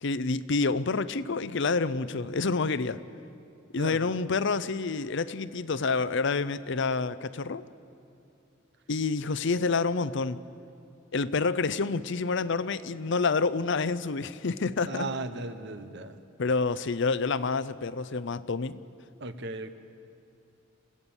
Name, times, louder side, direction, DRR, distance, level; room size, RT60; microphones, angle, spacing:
voice 1, 0.0-3.0 3.7-7.6 8.9-10.4 11.1-15.1 16.4-18.8, left 4 dB, 65° left, 14 dB, 0.7 m, -28 dB
voice 2, 3.8-4.2 14.9-16.2 19.2-19.7, right 2 dB, 60° right, 9 dB, 1.1 m, -36 dB
28.0 x 16.5 x 7.2 m, 2.6 s
head